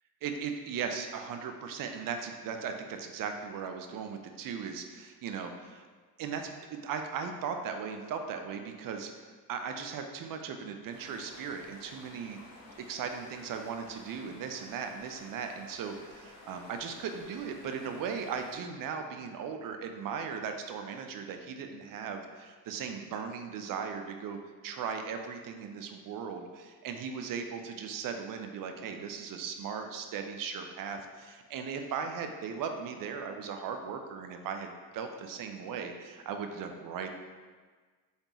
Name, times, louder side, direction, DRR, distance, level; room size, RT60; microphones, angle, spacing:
voice 1, 0.2-5.8 6.2-9.2 9.5-12.4 12.9-24.4 24.6-37.1, right 6 dB, 45° right, 5 dB, 0.6 m, -38 dB
sound 1, 10.9-18.6, left 2 dB, 30° left, 1.2 m, -53 dB
4.0 x 3.5 x 2.9 m, 1.5 s
hypercardioid pair, 55°, 50 cm